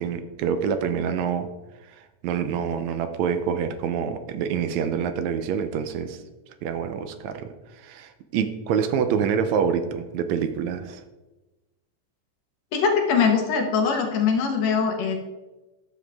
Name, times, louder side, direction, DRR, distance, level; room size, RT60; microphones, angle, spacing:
voice 1, 0.0-1.5 2.2-6.2 6.6-11.0, right 7 dB, 80° right, 9 dB, 1.9 m, -26 dB
voice 2, 12.7-15.2, left 6 dB, 70° left, 3 dB, 2.2 m, -22 dB
11.0 x 7.3 x 3.4 m, 1.1 s
omnidirectional pair, 3.3 m